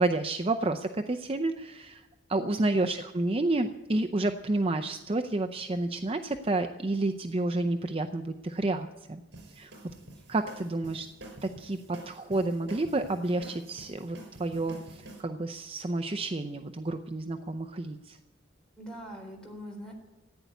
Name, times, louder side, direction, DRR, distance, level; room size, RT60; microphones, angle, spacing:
voice 1, 0.0-9.2 9.5-9.7 10.3-11.1 11.4-18.2, right 2 dB, 30° right, 6 dB, 0.6 m, -30 dB
voice 2, 2.3-2.7 18.8-19.9, equal, 5° left, 0 dB, 3.8 m, -43 dB
sound 1, 9.3-15.2, right 1 dB, 60° right, 5.0 m, -48 dB
15.0 x 9.4 x 9.2 m, 1.0 s
head